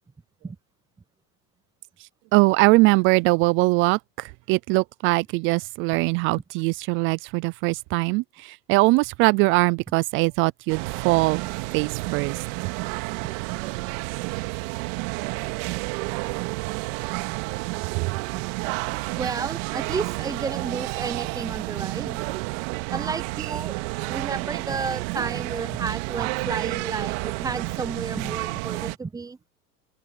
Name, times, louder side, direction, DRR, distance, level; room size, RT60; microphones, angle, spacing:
voice 1, 2.3-11.4 11.7-12.4, right 24 dB, 30° right, 0.3 m, -21 dB
sound 1, 10.7-29.0, right 26 dB, 55° right, 2.2 m, -30 dB
voice 2, 19.2-22.2 22.9-23.8 24.1-29.4, right 4 dB, 10° right, 0.8 m, -32 dB
open air
hypercardioid pair, 110°, 48 cm